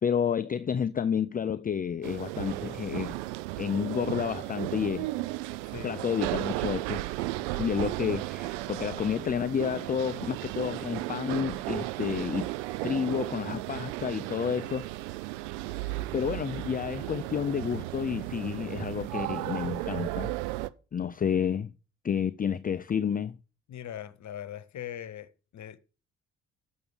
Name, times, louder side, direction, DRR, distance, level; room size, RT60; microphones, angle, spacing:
voice 1, 0.0-3.2 3.6-5.1 5.8-7.0 7.6-12.5 12.8-14.9 15.8-20.3 20.9-21.7 22.0-23.4, left 7 dB, 25° left, 0.5 m, -30 dB
sound 1, 2.0-20.7, right 18 dB, 80° right, 0.6 m, -35 dB
voice 2, 5.6-6.0 16.2-16.3 23.7-25.8, left 10 dB, 50° left, 1.1 m, -41 dB
7.1 x 6.9 x 8.0 m
hypercardioid pair, 45°, 35 cm